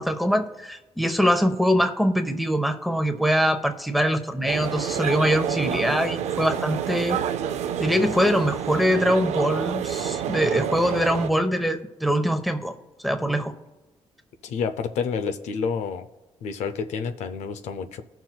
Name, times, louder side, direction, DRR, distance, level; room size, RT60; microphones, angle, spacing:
voice 1, 0.0-7.2 7.8-12.7 13.0-13.5, equal, ahead, 7 dB, 0.8 m, -23 dB
sound 1, 4.5-11.3, right 9 dB, 80° right, 0.4 m, -28 dB
voice 2, 14.4-16.1 16.4-18.0, left 6 dB, 85° left, 8 dB, 0.5 m, -29 dB
17.0 x 5.9 x 2.3 m, 1.1 s
cardioid pair, 80°, 11 cm